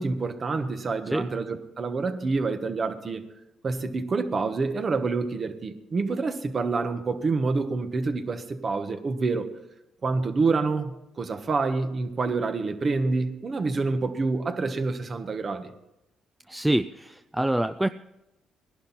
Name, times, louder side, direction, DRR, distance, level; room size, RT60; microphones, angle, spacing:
voice 1, 0.0-3.2 3.6-9.5 10.0-15.7, right 3 dB, 40° right, 1.4 m, -27 dB
voice 2, 16.5-17.9, right 1 dB, 5° right, 0.5 m, -25 dB
19.0 x 11.5 x 4.3 m
cardioid pair, 90°, 0 cm